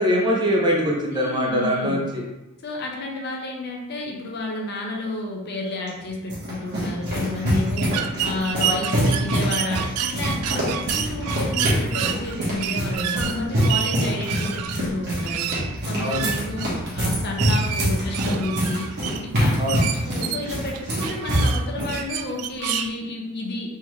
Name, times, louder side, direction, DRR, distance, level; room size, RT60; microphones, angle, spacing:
voice 1, 0.0-2.2 16.0-16.3 19.6-19.8, equal, 20° right, -2 dB, 0.6 m, -22 dB
voice 2, 1.1-2.1 2.6-15.5 15.9-18.9 19.2-19.5 20.1-23.7, left 2 dB, 50° left, 0 dB, 0.6 m, -31 dB
sound 1, 5.9-22.0, equal, 50° right, 1.1 m, -25 dB
sound 2, 7.8-22.9, right 10 dB, 85° right, 0.3 m, -30 dB
3.5 x 3.0 x 3.1 m, 0.97 s
head